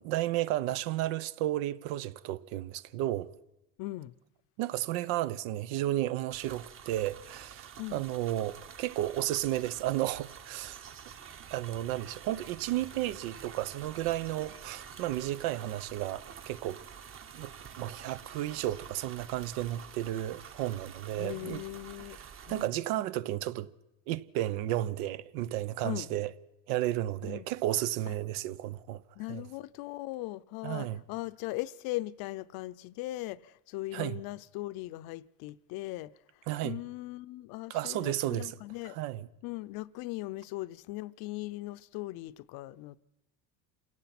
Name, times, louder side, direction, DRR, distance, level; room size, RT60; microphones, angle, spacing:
voice 1, 0.0-3.3 4.6-10.8 11.5-16.8 17.3-21.6 22.1-23.7 24.1-26.3 26.7-29.0 29.3-29.4 30.6-31.0 33.9-34.2 36.5-36.8 37.7-38.5 38.8-39.3, right 14 dB, 80° right, 1.0 m, -33 dB
voice 2, 3.8-4.1 7.8-8.0 21.2-22.2 22.5-22.7 25.8-26.1 27.2-27.5 29.2-36.1 36.6-39.0 39.4-43.0, left 18 dB, 60° left, 0.7 m, -39 dB
sound 1, 6.3-22.7, right 7 dB, 30° right, 1.2 m, -48 dB
27.5 x 17.5 x 6.0 m
cardioid pair, 140°, 40 cm